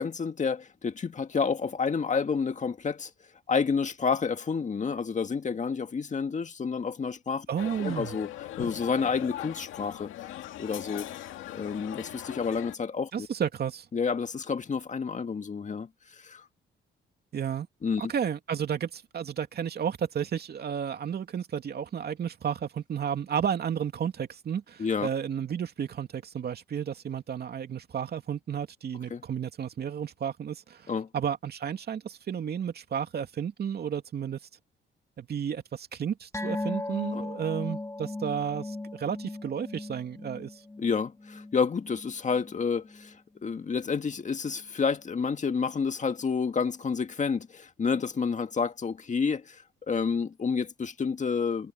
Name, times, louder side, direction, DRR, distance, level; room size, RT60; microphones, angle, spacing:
voice 1, 0.0-3.1 3.5-7.5 7.8-8.3 8.6-10.1 10.6-11.1 11.5-13.3 13.9-15.9 16.2-16.5 17.8-18.1 24.8-25.1 29.1-29.2 30.9-31.1 37.1-37.2 40.8-43.1 43.4-49.6 49.9-51.7, left 5 dB, 40° left, 1.9 m, -29 dB
voice 2, 7.5-8.2 13.1-13.9 17.3-17.7 18.0-34.4 35.2-40.6, right 8 dB, 55° right, 2.6 m, -32 dB
sound 1, 7.6-12.8, left 13 dB, 85° left, 2.2 m, -40 dB
sound 2, 36.3-43.1 43.4-43.6 44.0-44.1, left 2 dB, 15° left, 2.0 m, -38 dB
cardioid pair, 90°, 20 cm